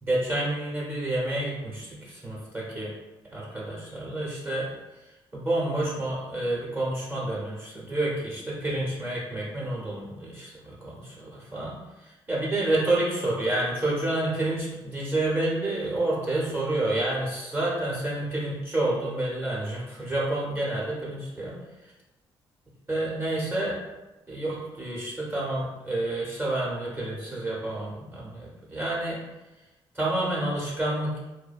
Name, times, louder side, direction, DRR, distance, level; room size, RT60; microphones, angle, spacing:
voice 1, 0.0-2.9 3.3-4.7 5.3-21.9 22.9-23.8 24.3-29.2 29.9-31.2, right 1 dB, 20° right, -5 dB, 0.8 m, -29 dB
2.5 x 2.1 x 2.3 m, 1.1 s
supercardioid pair, 65°, 10 cm